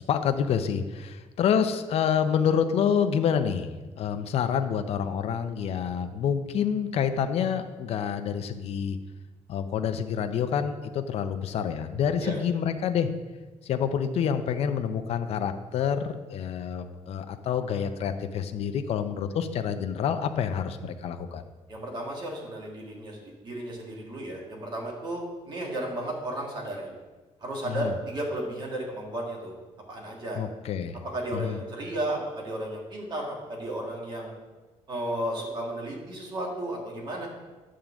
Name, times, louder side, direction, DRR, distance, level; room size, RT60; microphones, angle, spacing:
voice 1, 0.1-3.7 4.0-9.0 9.5-13.1 13.6-21.4 27.6-27.9 30.4-31.0 31.3-31.6, left 7 dB, 60° left, 8 dB, 0.6 m, -27 dB
voice 2, 21.7-26.9 27.4-29.5 29.9-30.4 31.1-34.3 34.9-37.3, right 1 dB, 40° right, -1 dB, 2.0 m, -33 dB
9.0 x 3.7 x 7.0 m, 1.2 s
cardioid pair, 160°, 12 cm